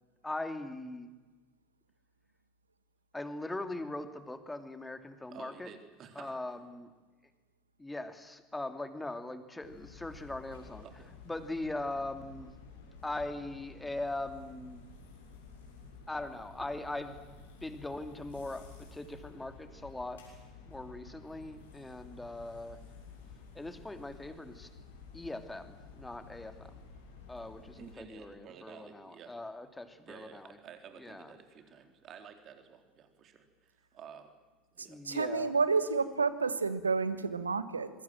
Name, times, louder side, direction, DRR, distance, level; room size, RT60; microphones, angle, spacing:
voice 1, 0.2-1.1 3.1-5.7 6.1-6.9 7.8-10.8 11.3-12.6 13.0-14.9 16.1-20.2 20.7-22.8 23.5-24.7 25.1-26.7 27.3-30.6 31.0-31.3 34.9-35.5, left 2 dB, 10° left, 8 dB, 2.8 m, -40 dB
voice 2, 5.3-6.4 10.8-11.1 27.8-29.4 30.0-34.3 34.7-35.0, right 7 dB, 40° right, 6 dB, 4.0 m, -52 dB
sound 1, 9.6-28.0, left 4 dB, 70° left, 6.8 m, -52 dB
voice 3, 35.1-37.9, right 4 dB, 80° right, 13 dB, 1.5 m, -30 dB
26.5 x 23.0 x 7.7 m, 1.2 s
figure-of-eight pair, 70°, 0 cm